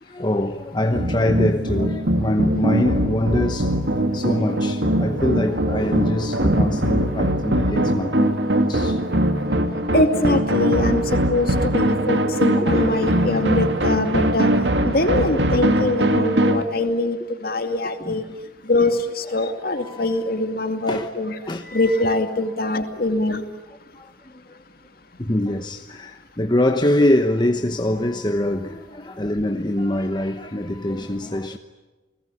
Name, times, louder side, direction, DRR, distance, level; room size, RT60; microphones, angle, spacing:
voice 1, 0.0-9.0 12.9-13.0 18.0-18.2 18.7-18.9 19.4-19.5 19.8-20.1 20.9-21.1 21.5-21.7 23.9-24.6 25.2-31.6, left 1 dB, 25° left, 1.0 m, -24 dB
sound 1, 0.9-16.6, right 1 dB, 70° right, 2.1 m, -21 dB
voice 2, 9.9-14.5 14.8-18.2 18.6-21.4 21.6-23.4, left 2 dB, 50° left, 2.4 m, -23 dB
29.5 x 20.0 x 9.8 m
head